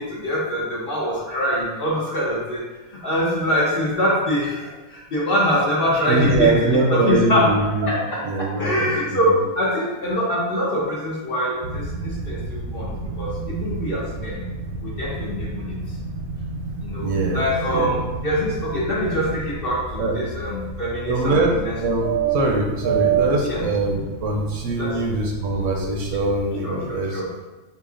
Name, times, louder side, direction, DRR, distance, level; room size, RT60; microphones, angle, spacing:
voice 1, 0.0-2.6 2.9-14.4 14.8-15.7 16.8-21.8 23.5-23.6 24.7-25.0 25.6-26.3 26.6-27.3, equal, 50° left, -5 dB, 0.8 m, -24 dB
voice 2, 6.1-7.9 8.2-9.0 17.0-17.4 17.7-17.9 20.0-20.2 21.1-27.2, right 2 dB, 70° right, 0 dB, 0.9 m, -22 dB
sound 1, 11.6-26.4, right 5 dB, 90° right, 1.1 m, -29 dB
5.0 x 2.6 x 2.4 m, 1.2 s
omnidirectional pair, 1.5 m